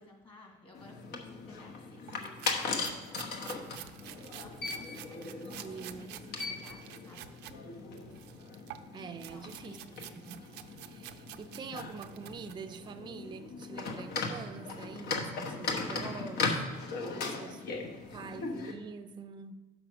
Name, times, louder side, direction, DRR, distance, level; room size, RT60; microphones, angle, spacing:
voice 1, 0.0-5.2 5.6-7.4 9.3-10.1 16.6-17.2 17.5-18.4, left 2 dB, 30° left, 2.1 m, -55 dB
sound 1, 0.7-18.7, left 4 dB, 70° left, 1.1 m, -38 dB
sound 2, 2.1-7.6 7.9-12.9, right 13 dB, 85° right, 0.5 m, -49 dB
voice 2, 5.2-6.2 8.9-9.8 10.2-10.4 10.8-16.6 17.1-17.6 18.1-19.6, right 5 dB, 25° right, 0.4 m, -45 dB
6.1 x 4.9 x 6.0 m
cardioid pair, 110°, 17 cm